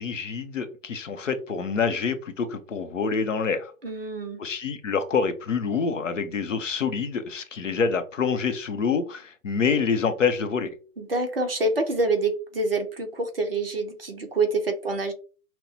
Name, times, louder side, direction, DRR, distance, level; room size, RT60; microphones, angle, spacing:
voice 1, 0.0-3.7 4.4-10.7, left 5 dB, 55° left, 0.7 m, -26 dB
voice 2, 3.8-4.4 11.0-15.1, right 2 dB, 40° right, 0.7 m, -26 dB
5.8 x 2.1 x 2.7 m
hypercardioid pair, 175°, 46 cm